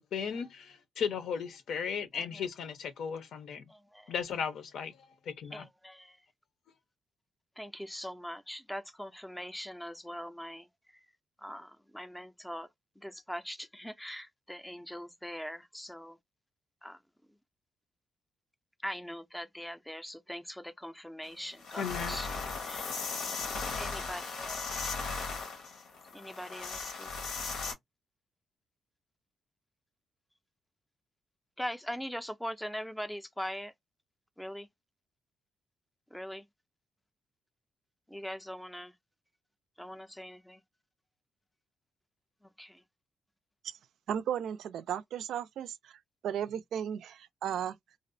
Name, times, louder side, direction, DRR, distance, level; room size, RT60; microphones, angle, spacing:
voice 1, 0.0-3.6 4.1-4.9 5.3-5.6 21.8-22.2, left 7 dB, 70° left, 0.7 m, -36 dB
voice 2, 2.1-2.5 3.7-4.1 5.5-6.2 7.6-11.0 11.4-12.7 13.0-16.2 16.8-17.0 17.3-17.4 18.8-22.9 23.2-23.5 23.8-24.9 26.1-27.2 31.6-33.7 34.4-34.7 36.1-36.5 38.1-39.0 39.8-40.6 42.4-42.8, equal, 5° left, 0.4 m, -42 dB
sound 1, 21.3-21.4 21.6-27.7, left 4 dB, 90° left, 1.2 m, -37 dB
voice 3, 44.1-45.9 46.2-47.8, right 9 dB, 80° right, 0.3 m, -35 dB
2.6 x 2.1 x 2.5 m
cardioid pair, 140°, 0 cm